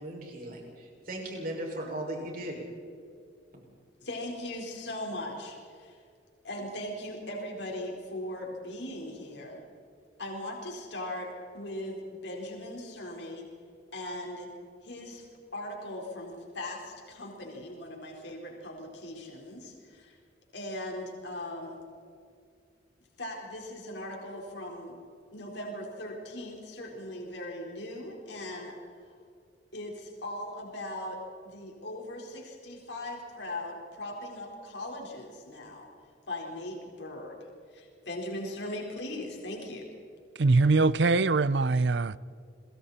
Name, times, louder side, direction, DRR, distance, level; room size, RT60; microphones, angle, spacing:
voice 1, 0.0-2.6, right 1 dB, 50° right, 6.0 m, -37 dB
voice 2, 4.0-6.0 6.4-9.6 10.2-13.5 13.9-14.5 14.8-15.3 15.5-20.2 20.5-21.8 23.2-24.9 25.3-28.8 29.7-31.2 31.4-35.9 36.3-37.4 37.7-39.9, left 1 dB, 70° left, 4.6 m, -39 dB
voice 3, 40.4-42.2, right 3 dB, 65° right, 0.6 m, -23 dB
29.0 x 22.5 x 4.4 m
head